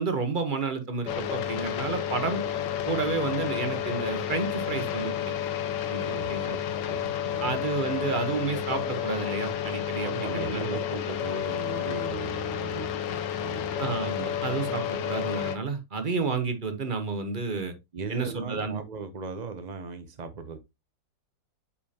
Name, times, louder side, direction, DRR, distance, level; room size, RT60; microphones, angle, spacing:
voice 1, 0.0-2.4 2.9-5.3 5.9-6.6 7.4-10.8 13.8-17.7 18.1-18.8, right 4 dB, 35° right, 1.0 m, -31 dB
sound 1, 1.1-15.6, left 9 dB, 75° left, 1.4 m, -31 dB
voice 2, 6.0-6.6 6.9-7.6 10.0-13.8 17.9-20.6, right 4 dB, 70° right, 0.4 m, -38 dB
8.4 x 5.5 x 2.8 m
omnidirectional pair, 2.0 m